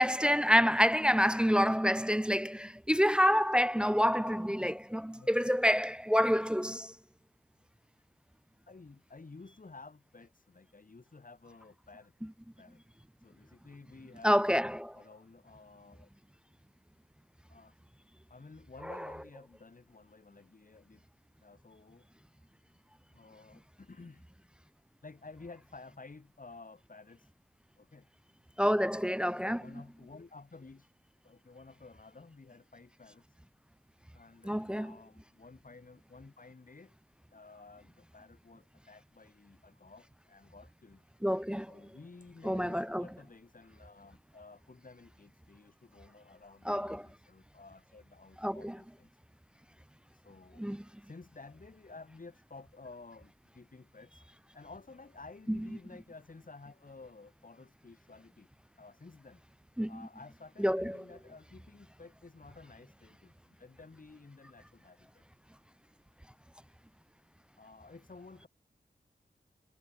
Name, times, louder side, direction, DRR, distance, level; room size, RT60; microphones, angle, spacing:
voice 1, 0.0-6.9 14.2-15.0 28.6-29.6 34.5-34.9 41.2-41.8 42.4-43.1 46.7-47.0 48.4-48.8 50.6-50.8 55.5-55.6 59.8-59.9 60.6-61.0, equal, 5° right, 0.5 m, -28 dB
voice 2, 4.6-5.3 8.7-12.1 12.6-12.8 13.2-14.4 15.0-16.1 17.5-17.8 18.3-21.0 21.4-22.1 23.1-24.3 25.0-27.3 27.8-28.1 28.9-29.1 29.5-30.9 31.2-33.4 34.1-36.9 37.3-41.0 41.7-49.1 50.1-50.6 51.0-54.3 54.5-58.5 58.8-59.4 59.9-65.2 67.6-68.5, left 3 dB, 50° left, 4.6 m, -53 dB
cardioid pair, 50°, 18 cm